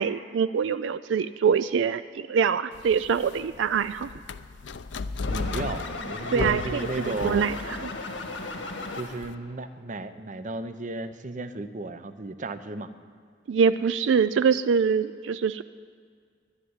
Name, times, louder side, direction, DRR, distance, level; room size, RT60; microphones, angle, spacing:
voice 1, 0.0-4.1 6.3-7.5 13.5-15.6, right 6 dB, 80° right, 13 dB, 0.4 m, -24 dB
sound 1, 2.7-9.3, left 4 dB, 70° left, 0.5 m, -36 dB
sound 2, 5.2-9.4, left 3 dB, 90° left, 1.7 m, -36 dB
voice 2, 5.2-7.5 8.9-12.9, right 3 dB, 45° right, 11 dB, 0.7 m, -34 dB
11.5 x 10.5 x 9.6 m, 2.1 s
head